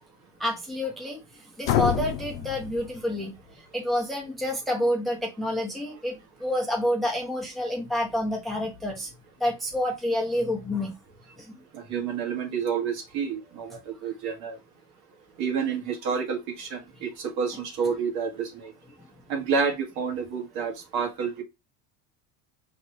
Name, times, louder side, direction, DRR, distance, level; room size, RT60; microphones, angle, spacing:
voice 1, 0.4-9.1 9.4-10.9 11.4-11.6, left 1 dB, ahead, 0.9 m, -28 dB
sound 1, 1.6-3.5, left 11 dB, 80° left, 0.7 m, -28 dB
voice 2, 11.7-14.6 15.4-18.7 19.3-21.4, right 6 dB, 50° right, 1.5 m, -29 dB
5.1 x 3.2 x 2.9 m
cardioid pair, 160°, 46 cm